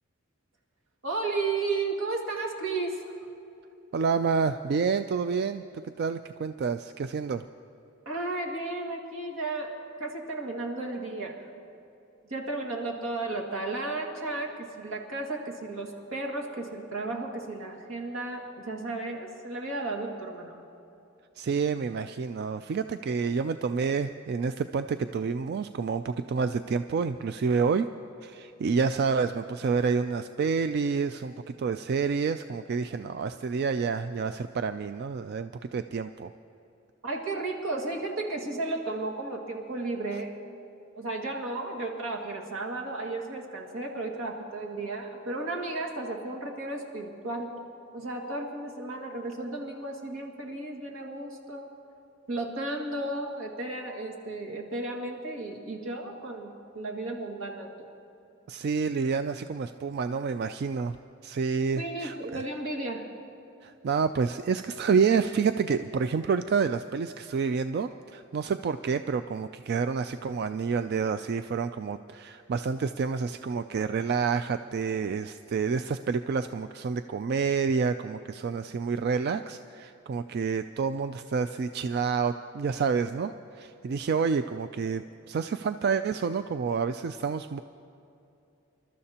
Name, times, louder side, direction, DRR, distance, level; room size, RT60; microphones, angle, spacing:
voice 1, 1.0-3.1 8.1-9.7 10.0-11.5 12.3-20.6 37.0-40.4 41.0-47.5 47.9-51.7 52.3-57.9 61.7-63.1, right 2 dB, 85° right, 0 dB, 2.0 m, -34 dB
voice 2, 3.9-7.4 21.4-27.9 28.2-31.3 31.6-36.3 58.5-61.0 61.2-62.4 63.6-87.6, right 5 dB, 50° right, 10 dB, 0.3 m, -28 dB
27.5 x 12.5 x 2.9 m, 2.8 s
head